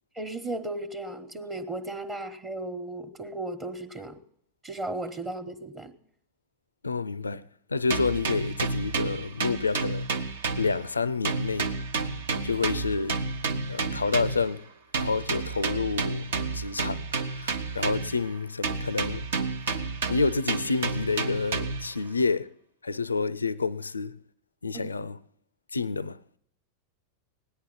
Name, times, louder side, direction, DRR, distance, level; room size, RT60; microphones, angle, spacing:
voice 1, 0.1-4.2 4.6-5.9 24.7-24.9, right 2 dB, 20° right, 1.1 m, -35 dB
voice 2, 6.8-7.4 7.7-11.7 12.3-13.2 13.7-14.6 15.0-16.3 16.5-19.3 19.7-22.5 22.8-24.2 24.6-25.2 25.7-26.2, left 4 dB, 80° left, 0.4 m, -29 dB
sound 1, 7.9-11.0 11.2-14.5 14.9-18.3 18.6-21.9, right 4 dB, 60° right, 0.9 m, -31 dB
17.5 x 10.5 x 3.9 m
figure-of-eight pair, 90°, 0 cm